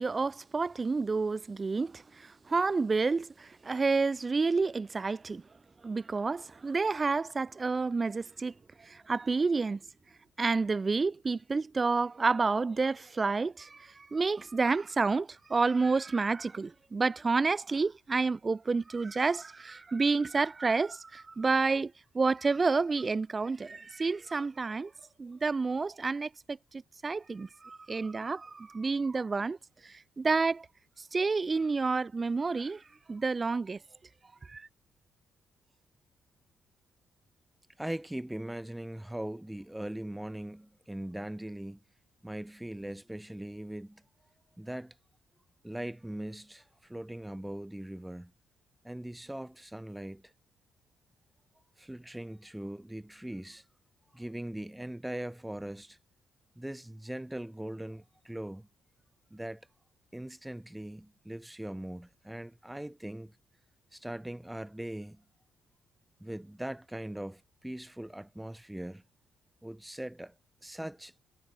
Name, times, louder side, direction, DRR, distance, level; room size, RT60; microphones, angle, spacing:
voice 1, 0.0-2.0 2.5-5.4 5.8-8.5 8.9-9.8 10.4-24.9 25.2-29.6 30.2-30.7 31.1-32.8 33.1-33.8 34.5-34.7, right 4 dB, 30° right, 0.4 m, -29 dB
voice 2, 37.8-41.8 42.2-44.0 44.6-44.9 45.6-48.3 48.8-50.3 51.8-53.6 54.1-56.0 56.6-58.7 59.3-59.7 60.1-63.4 63.9-65.2 66.2-69.0 69.6-70.3 70.6-71.1, right 1 dB, 5° right, 3.2 m, -40 dB
cardioid pair, 90°, 0 cm